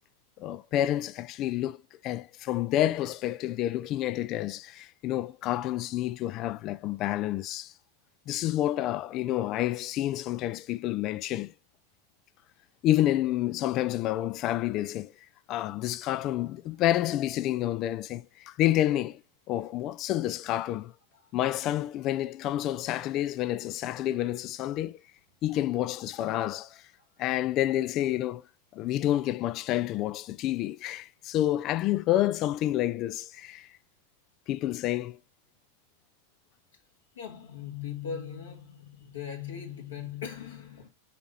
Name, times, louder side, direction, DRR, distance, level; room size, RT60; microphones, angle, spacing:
voice 1, 0.4-1.8 2.0-7.7 8.3-11.5 12.8-15.1 15.5-19.2 19.5-20.9 21.3-25.0 25.4-26.8 27.2-28.4 28.7-33.7 34.5-35.2, left 13 dB, 35° left, 0.4 m, -29 dB
voice 2, 37.1-40.9, left 8 dB, 65° left, 2.5 m, -39 dB
5.9 x 4.7 x 5.4 m
figure-of-eight pair, 90°, 0 cm